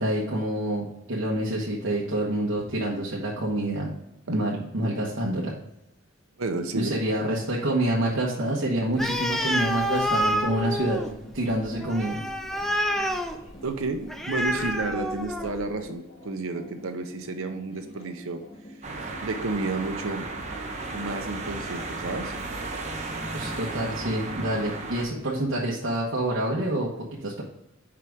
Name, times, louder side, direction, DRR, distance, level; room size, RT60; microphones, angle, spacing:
voice 1, 0.0-3.9 4.3-5.5 6.8-11.0 11.3-12.2 23.3-27.4, right 1 dB, 65° right, -5 dB, 1.2 m, -27 dB
voice 2, 6.4-6.9 13.6-18.4 19.0-20.3 20.9-22.3, right 3 dB, 90° right, 5 dB, 0.7 m, -31 dB
sound 1, 6.5-25.2, left 1 dB, 35° left, 1.8 m, -47 dB
Animal, 8.9-15.7, equal, ahead, 0.5 m, -28 dB
sound 2, 18.8-25.0, right 3 dB, 35° right, 1.0 m, -34 dB
5.9 x 4.8 x 4.6 m, 0.87 s
head